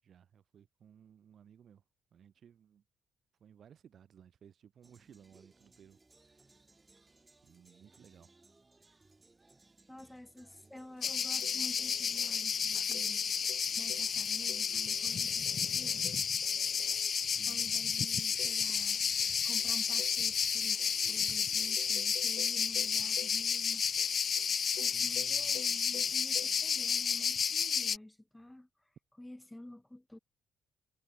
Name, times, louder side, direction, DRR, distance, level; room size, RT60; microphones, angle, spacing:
voice 1, 0.0-1.8 2.1-2.8 3.4-6.7 7.4-8.3 17.3-18.2 24.9-25.6, right 8 dB, 60° right, 6.7 m, -59 dB
sound 1, 4.8-21.9, right 3 dB, 20° right, 5.4 m, -64 dB
voice 2, 9.9-15.4 15.7-16.1 17.5-19.1 19.4-23.8 24.8-28.7 29.2-30.2, left 1 dB, 10° left, 7.9 m, -50 dB
sound 2, 10.7-26.8, left 15 dB, 90° left, 4.3 m, -52 dB
sound 3, 11.0-28.0, left 7 dB, 50° left, 0.4 m, -32 dB
cardioid pair, 90°, 0 cm